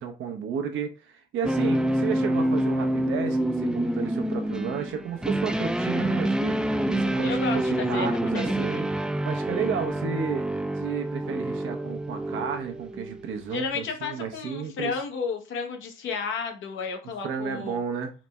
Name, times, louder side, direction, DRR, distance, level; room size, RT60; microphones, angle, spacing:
voice 1, 0.0-7.6 7.9-8.9 9.2-15.0 17.0-18.1, right 6 dB, 80° right, 0.7 m, -32 dB
sound 1, 1.4-13.4, right 1 dB, 5° right, 0.3 m, -27 dB
voice 2, 7.2-8.8 13.5-17.8, left 5 dB, 80° left, 0.9 m, -32 dB
4.0 x 2.1 x 3.4 m
cardioid pair, 90°, 20 cm